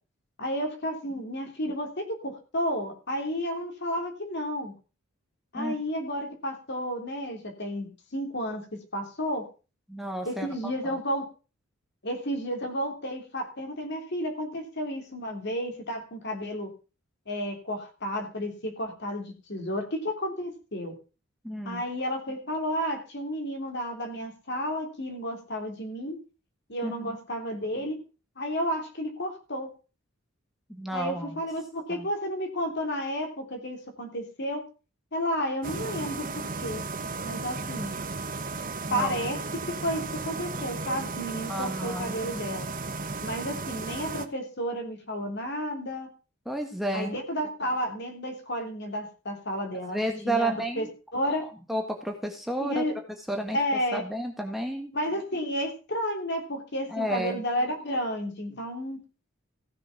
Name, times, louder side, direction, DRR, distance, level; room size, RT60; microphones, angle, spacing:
voice 1, 0.4-4.7 5.5-8.6 8.9-9.5 10.2-11.3 12.0-16.7 17.3-20.9 21.6-26.2 26.7-28.0 28.4-29.7 30.9-34.7 35.1-38.0 38.9-39.4 39.8-42.6 43.2-46.1 46.9-50.8 51.1-51.4 52.6-52.9 53.5-54.0 54.9-59.0, equal, 50° left, 4 dB, 3.4 m, -32 dB
voice 2, 9.9-11.0 21.4-21.8 26.8-27.2 30.7-31.4 31.9-32.1 38.9-39.2 41.5-42.2 46.4-47.1 49.9-50.9 51.4-52.8 53.3-53.6 53.9-54.9 56.9-57.4, right 1 dB, ahead, 3 dB, 1.5 m, -32 dB
sound 1, 35.6-44.3, right 3 dB, 40° right, 1.1 m, -35 dB
16.0 x 6.9 x 5.9 m, 0.33 s
head